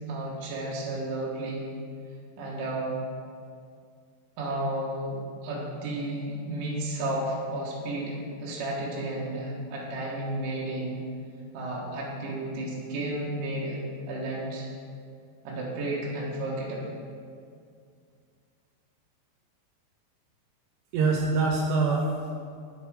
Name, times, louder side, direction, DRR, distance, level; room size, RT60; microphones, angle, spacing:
voice 1, 0.1-1.7 2.4-3.0 4.4-11.0 11.5-13.8 14.1-14.7 15.4-17.0, right 1 dB, 60° right, -5 dB, 2.7 m, -32 dB
voice 2, 20.9-22.3, right 3 dB, 85° right, -1 dB, 2.9 m, -24 dB
9.4 x 6.5 x 5.0 m, 2.3 s
omnidirectional pair, 4.7 m